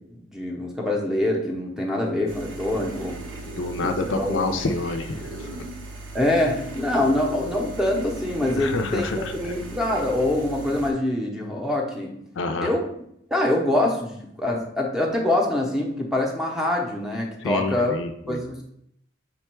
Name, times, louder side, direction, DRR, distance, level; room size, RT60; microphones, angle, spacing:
voice 1, 0.1-3.1 3.8-4.6 6.1-12.1 12.6-12.9 13.3-17.9 18.3-18.7, left 1 dB, ahead, -1 dB, 0.6 m, -25 dB
sound 1, 2.3-10.9, right 2 dB, 80° right, 0.8 m, -37 dB
voice 2, 3.4-5.5 8.6-9.4 12.4-12.7 17.4-18.4, left 3 dB, 70° left, 6 dB, 0.4 m, -28 dB
5.2 x 2.3 x 4.3 m, 0.72 s
head